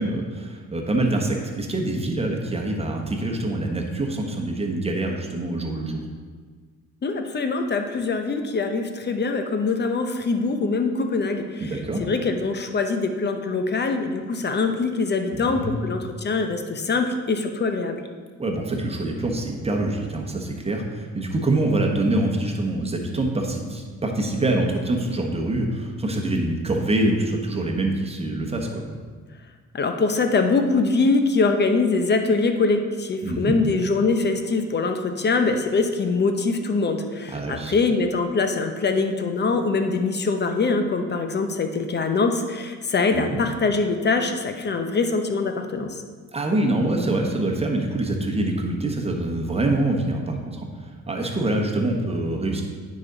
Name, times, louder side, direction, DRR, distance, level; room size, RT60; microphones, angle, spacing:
voice 1, 0.0-6.0 11.6-12.0 15.3-15.9 18.4-28.8 33.2-33.5 37.3-37.7 43.1-43.2 46.3-50.7 51.1-52.6, right 2 dB, 20° right, 1 dB, 1.3 m, -25 dB
voice 2, 7.0-11.7 12.0-18.0 29.7-45.9, left 3 dB, 35° left, 6 dB, 0.8 m, -23 dB
9.5 x 5.2 x 4.0 m, 1.5 s
cardioid pair, 90°, 30 cm